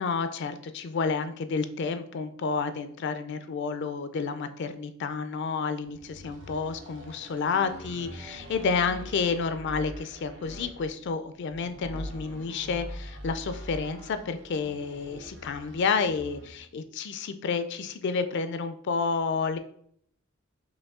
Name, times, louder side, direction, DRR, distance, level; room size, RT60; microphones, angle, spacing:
voice 1, 0.0-19.6, left 5 dB, 55° left, 10 dB, 0.4 m, -30 dB
sound 1, 5.8-16.6, equal, 60° right, 1.6 m, -43 dB
5.2 x 2.7 x 3.6 m, 0.64 s
head